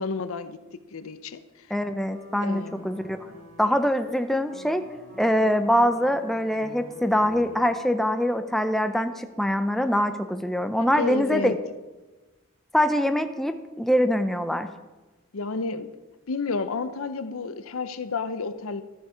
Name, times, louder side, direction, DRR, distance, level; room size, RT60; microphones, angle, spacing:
voice 1, 0.0-1.7 2.4-3.0 10.9-11.6 15.3-15.9 16.3-18.8, left 4 dB, 70° left, 12 dB, 0.6 m, -31 dB
voice 2, 1.7-3.2 3.6-4.8 5.2-11.6 12.7-14.7, equal, ahead, 8 dB, 0.4 m, -24 dB
sound 1, 2.1-7.7, equal, 65° right, 3.5 m, -47 dB
13.0 x 7.0 x 4.9 m, 1.2 s
head